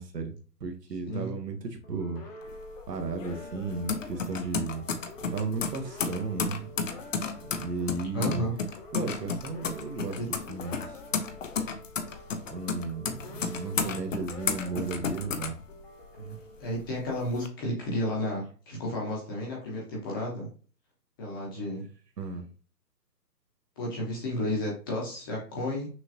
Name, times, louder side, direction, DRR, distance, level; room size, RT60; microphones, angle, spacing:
voice 1, 0.0-2.3 2.9-4.9 5.3-6.7 7.4-8.5 8.9-10.2 10.5-11.0 12.5-15.6 22.2-22.5, right 3 dB, 75° right, 5 dB, 1.3 m, -34 dB
sound 1, 1.8-17.2, left 1 dB, 35° left, 1.0 m, -48 dB
sound 2, 2.4-16.2 16.6-17.5, left 5 dB, 50° left, 0.7 m, -33 dB
voice 2, 8.1-8.5 10.2-10.3 13.7-13.9 16.2-20.5 21.2-21.9 23.8-25.9, left 1 dB, 15° left, -3 dB, 0.9 m, -32 dB
6.1 x 3.0 x 2.7 m, 0.38 s
hypercardioid pair, 150°, 49 cm